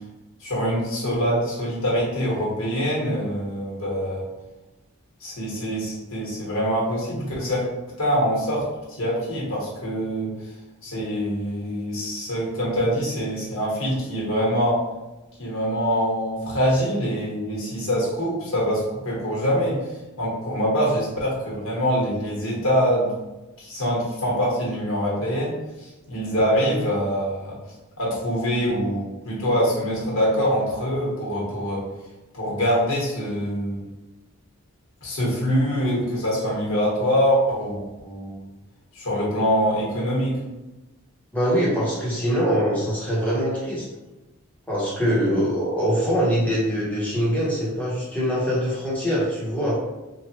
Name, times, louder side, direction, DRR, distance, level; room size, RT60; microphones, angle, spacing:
voice 1, 0.4-4.3 5.2-10.3 10.8-14.8 15.4-19.8 20.2-23.1 23.6-27.6 28.0-31.8 32.3-33.8 35.0-38.3 38.9-40.4, equal, 60° left, -6 dB, 1.2 m, -24 dB
voice 2, 41.3-43.8 44.7-49.8, equal, 5° left, -8 dB, 1.0 m, -23 dB
3.1 x 2.4 x 2.9 m, 1.0 s
head